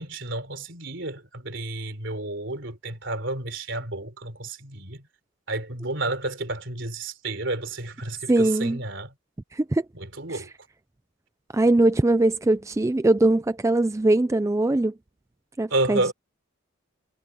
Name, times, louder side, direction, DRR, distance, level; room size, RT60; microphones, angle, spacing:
voice 1, 0.0-5.0 5.5-9.1 9.9-10.5 15.7-16.1, right 2 dB, 60° right, 3.9 m, -31 dB
voice 2, 8.3-8.8 9.5-9.8 10.3-10.4 11.5-14.9 15.6-16.0, right 2 dB, 15° right, 0.3 m, -21 dB
head